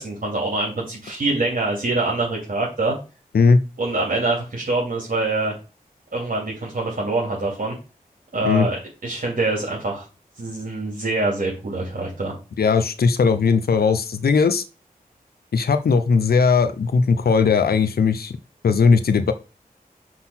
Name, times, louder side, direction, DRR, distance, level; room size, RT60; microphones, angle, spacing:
voice 1, 0.0-2.9 3.8-5.5 6.1-7.8 8.3-10.1 10.4-12.3, right 2 dB, 65° right, -3 dB, 2.7 m, -25 dB
voice 2, 12.6-14.6 15.5-18.4 18.6-19.3, left 5 dB, 85° left, 10 dB, 0.6 m, -18 dB
6.0 x 3.9 x 6.0 m, 0.31 s
cardioid pair, 45°, 16 cm